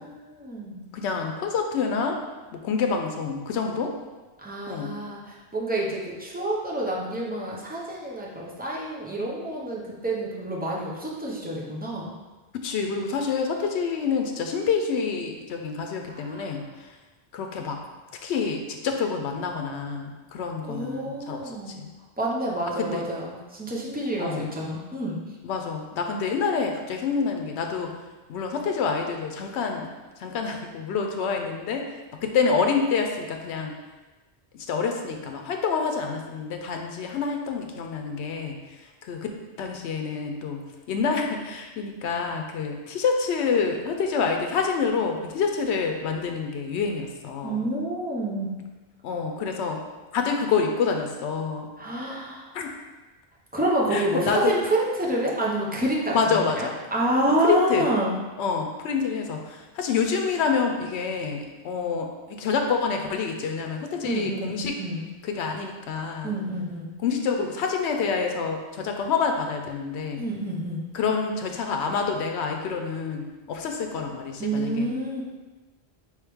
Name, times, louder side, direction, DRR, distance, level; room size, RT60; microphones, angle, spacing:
voice 1, 0.0-0.9 4.4-12.1 16.1-16.6 20.7-21.8 22.2-25.2 47.4-48.5 51.8-52.5 53.5-58.1 64.0-65.1 66.2-66.9 70.2-70.8 74.4-75.2, right 1 dB, 10° right, -4 dB, 0.6 m, -28 dB
voice 2, 0.9-2.2 2.6-3.9 4.7-4.9 12.6-16.6 17.3-17.8 18.2-21.4 21.8-21.9 22.8-23.0 24.2-24.5 25.4-27.9 28.3-29.9 30.2-31.9 32.2-33.8 34.7-38.6 39.1-39.3 39.6-47.6 49.0-49.8 50.1-51.7 52.5-52.7 53.9-54.5 56.1-56.8 57.4-57.9 58.4-64.8 65.2-66.3 67.0-70.2 70.9-74.9, left 5 dB, 85° left, 3 dB, 0.8 m, -27 dB
4.7 x 3.2 x 3.4 m, 1.2 s
omnidirectional pair, 1.1 m